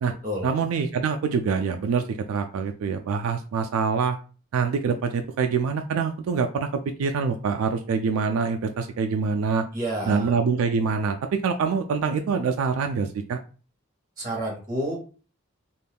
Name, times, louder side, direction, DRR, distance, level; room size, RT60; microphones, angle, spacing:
voice 1, 0.4-4.2 4.5-9.7 10.1-11.2 11.4-13.4, right 5 dB, 85° right, 5 dB, 0.3 m, -25 dB
voice 2, 9.7-10.3 14.2-15.0, right 1 dB, 15° right, -2 dB, 0.8 m, -29 dB
2.5 x 2.2 x 3.4 m, 0.37 s
head